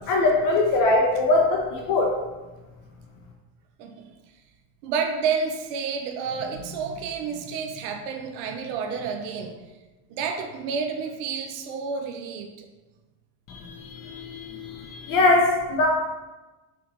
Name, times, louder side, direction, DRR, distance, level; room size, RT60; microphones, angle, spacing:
voice 1, 0.1-2.1 13.5-15.9, left 2 dB, 40° left, 0 dB, 0.5 m, -22 dB
voice 2, 4.8-9.6 10.1-12.5, right 5 dB, 80° right, 3 dB, 0.7 m, -30 dB
5.8 x 3.0 x 2.5 m, 1.2 s
cardioid pair, 155°, 50 cm